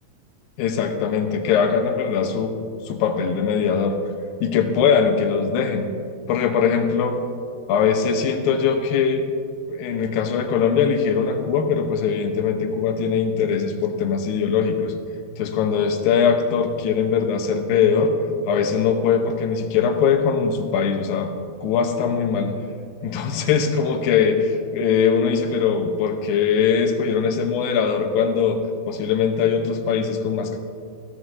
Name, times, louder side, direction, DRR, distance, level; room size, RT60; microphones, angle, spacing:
voice 1, 0.6-2.5 2.9-4.0 4.4-5.9 6.3-7.2 7.7-9.2 9.7-14.9 15.4-18.1 18.5-21.3 21.6-22.5 23.0-28.6 28.9-30.6, left 6 dB, 80° left, 5 dB, 2.6 m, -21 dB
14.5 x 14.0 x 2.7 m, 2.3 s
omnidirectional pair, 4.2 m